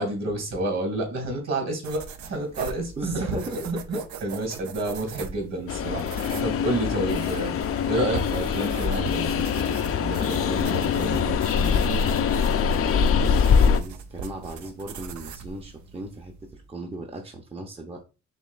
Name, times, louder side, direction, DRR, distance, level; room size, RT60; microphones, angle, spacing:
voice 1, 0.0-3.4 3.6-7.5 7.9-11.8, right 1 dB, 55° right, 2 dB, 2.3 m, -30 dB
sound 1, 1.8-16.7, right 5 dB, 70° right, 0.6 m, -39 dB
voice 2, 2.6-3.7 6.1-6.4 12.8-18.0, right 2 dB, 20° right, 2 dB, 0.7 m, -38 dB
Train, 5.7-13.8, left 7 dB, 50° left, 0.5 m, -23 dB
5.1 x 3.1 x 2.4 m, 0.32 s
cardioid pair, 90°, 30 cm